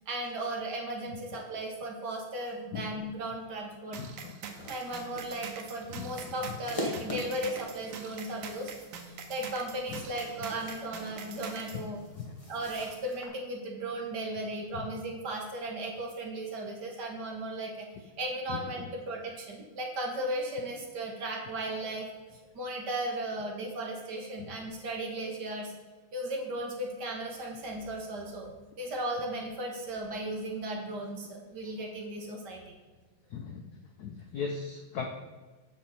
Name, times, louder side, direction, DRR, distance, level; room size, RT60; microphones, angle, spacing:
voice 1, 0.1-4.0 4.7-8.7 9.0-12.0 12.5-22.1 22.5-25.7 26.1-28.5 28.8-32.6, right 1 dB, 55° right, 0 dB, 1.7 m, -36 dB
sound 1, 3.9-11.8, right 6 dB, 85° right, 1.8 m, -44 dB
voice 2, 4.0-4.3 6.0-6.1 11.7-11.8 12.2-12.3 14.8-14.9 18.5-18.6 33.3-33.6 34.0-35.1, left 6 dB, 70° left, 3 dB, 0.9 m, -37 dB
sound 2, 4.5-13.3, left 1 dB, 20° left, 0.9 m, -44 dB
7.9 x 6.4 x 4.2 m, 1.3 s
omnidirectional pair, 2.4 m